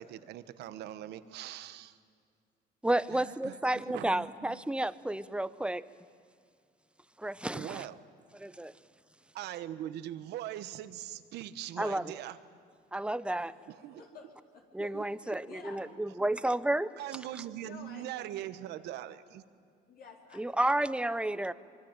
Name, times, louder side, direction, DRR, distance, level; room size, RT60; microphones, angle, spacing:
voice 1, 0.0-2.0 3.1-4.6 7.5-8.0 9.3-12.4 13.7-14.0 14.9-15.0 17.0-19.4, right 12 dB, 80° right, 13 dB, 1.3 m, -41 dB
voice 2, 2.8-5.8 7.2-7.9 8.4-8.7 11.8-12.1 12.9-13.5 14.7-16.9 20.3-21.5, right 1 dB, 5° right, 15 dB, 0.8 m, -31 dB
voice 3, 13.4-15.0 15.4-15.8 17.6-18.0 19.9-21.2, left 5 dB, 60° left, 1 dB, 4.3 m, -52 dB
25.0 x 23.5 x 9.1 m, 2.2 s
cardioid pair, 110°, 17 cm